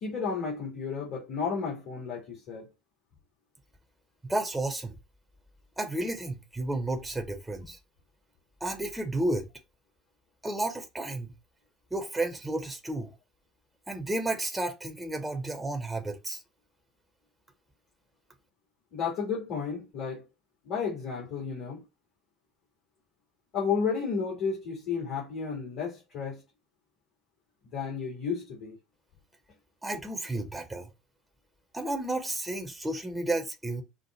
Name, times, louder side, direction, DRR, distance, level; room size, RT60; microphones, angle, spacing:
voice 1, 0.0-2.7 18.9-20.2 20.6-21.8 23.5-26.4 27.7-28.8, left 5 dB, 55° left, 2.0 m, -32 dB
voice 2, 4.3-4.9 5.8-7.8 8.6-9.5 10.4-11.3 11.9-13.1 13.9-16.4 29.8-30.9 31.7-33.8, right 2 dB, 10° right, 0.9 m, -32 dB
4.9 x 2.1 x 4.5 m
figure-of-eight pair, 65°, 0 cm